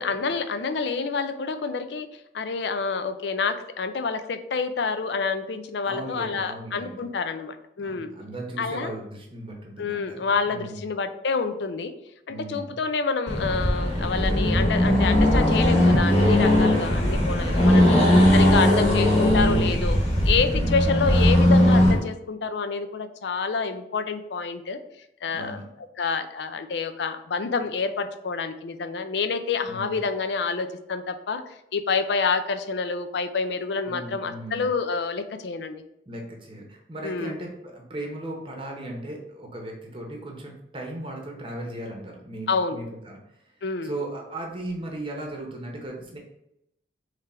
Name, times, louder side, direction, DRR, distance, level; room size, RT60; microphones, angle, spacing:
voice 1, 0.0-2.1 2.3-8.1 8.6-8.9 9.8-11.9 12.3-18.0 18.3-20.0 20.3-24.8 25.2-25.6 26.0-31.4 31.7-35.8 37.0-37.3 42.5-42.8 43.6-43.9, left 4 dB, 65° left, 9 dB, 0.4 m, -28 dB
voice 2, 5.8-7.0 7.8-10.9 12.3-12.8 16.7-16.9 20.5-21.0 25.3-25.7 29.7-30.0 33.9-34.6 36.1-43.2 43.8-46.2, right 1 dB, 30° right, 0 dB, 0.9 m, -37 dB
Accelerating revving vroom, 13.3-22.0, left 1 dB, 35° left, 1.3 m, -19 dB
3.7 x 3.3 x 4.2 m, 0.81 s
head